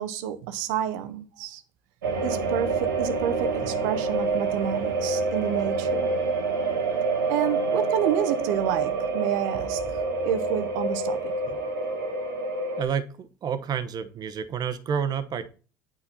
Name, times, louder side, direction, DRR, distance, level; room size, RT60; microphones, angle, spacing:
voice 1, 0.0-1.6 2.2-6.1 7.3-11.3, right 9 dB, 70° right, 0.8 m, -29 dB
sound 1, 2.0-12.8, right 3 dB, 85° right, 1.2 m, -27 dB
voice 2, 12.8-15.5, right 7 dB, 40° right, 0.9 m, -30 dB
9.1 x 4.2 x 4.1 m
hypercardioid pair, 75°, 10 cm